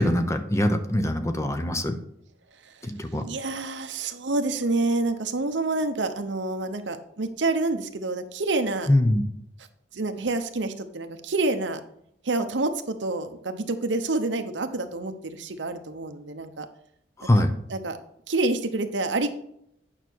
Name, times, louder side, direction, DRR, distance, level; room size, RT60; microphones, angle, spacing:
voice 1, 0.0-2.0 3.0-3.2 8.9-9.2 17.2-17.5, left 1 dB, 15° left, 7 dB, 0.7 m, -22 dB
voice 2, 3.2-8.9 9.9-11.8 12.2-16.7 17.7-18.0 18.3-19.3, right 2 dB, 90° right, 8 dB, 0.9 m, -27 dB
8.9 x 5.8 x 4.6 m, 0.75 s
head